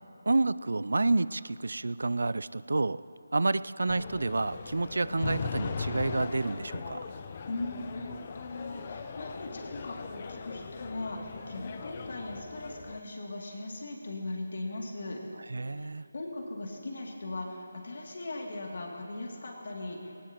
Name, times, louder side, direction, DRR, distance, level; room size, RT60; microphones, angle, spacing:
voice 1, 0.3-3.0 3.3-7.0 15.5-16.0, right 3 dB, 70° right, 17 dB, 0.4 m, -29 dB
sound 1, 3.9-13.0, left 5 dB, 35° left, 0.7 m, -39 dB
voice 2, 7.5-15.2 15.6-20.1, left 2 dB, 55° left, 0 dB, 2.6 m, -39 dB
19.5 x 18.5 x 3.0 m, 2.9 s
figure-of-eight pair, 155°, 0 cm